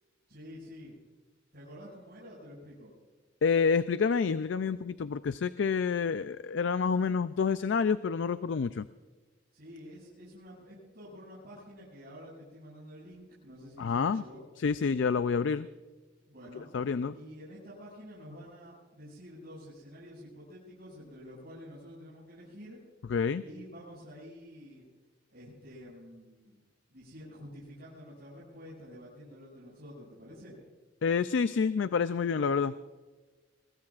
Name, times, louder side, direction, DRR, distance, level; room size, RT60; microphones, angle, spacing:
voice 1, 0.3-0.9 1.5-2.9 9.5-14.4 16.3-16.7 17.1-22.8 23.4-24.8 25.3-26.6 26.9-30.6, equal, 55° right, -8 dB, 6.5 m, -49 dB
voice 2, 3.4-8.9 13.8-14.2 14.6-15.7 16.7-17.1 23.1-23.4 31.0-32.7, left 5 dB, 70° left, 13 dB, 0.4 m, -28 dB
24.0 x 21.0 x 2.5 m, 1.3 s
head